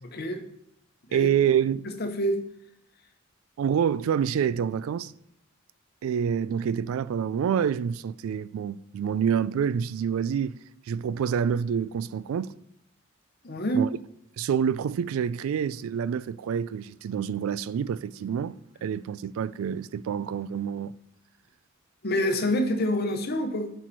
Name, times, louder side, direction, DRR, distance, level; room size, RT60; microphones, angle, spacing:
voice 1, 0.0-0.5 1.1-1.3 2.0-2.5 13.4-13.9 22.0-23.7, equal, 50° left, 0.8 m, -27 dB
voice 2, 1.1-1.9 3.6-5.1 6.0-10.6 10.9-12.5 13.7-13.9 14.4-18.6 18.8-21.0, right 8 dB, 80° right, 0.3 m, -27 dB
7.9 x 4.6 x 4.6 m
head